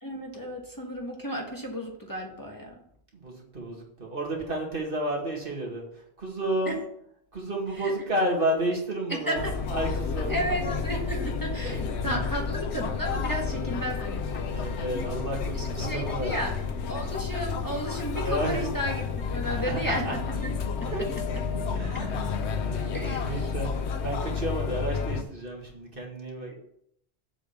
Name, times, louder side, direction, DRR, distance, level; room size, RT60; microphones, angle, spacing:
voice 1, 0.0-2.7 6.6-6.8 7.8-7.9 9.1-9.6 10.3-14.7 15.5-16.5 16.9-20.5 21.9-22.0 22.9-23.5 26.5-26.6, right 1 dB, 20° left, -1 dB, 1.5 m, -33 dB
voice 2, 3.1-5.8 6.2-6.8 7.3-9.4 9.7-10.4 11.6-11.8 12.0-12.2 14.4-16.3 18.1-18.6 19.5-20.1 20.9-21.0 21.7-26.5, right 1 dB, 55° right, -2 dB, 2.3 m, -31 dB
sound 1, 9.4-25.2, left 5 dB, 85° left, 1.1 m, -31 dB
7.7 x 5.0 x 7.1 m, 0.72 s
omnidirectional pair, 1.1 m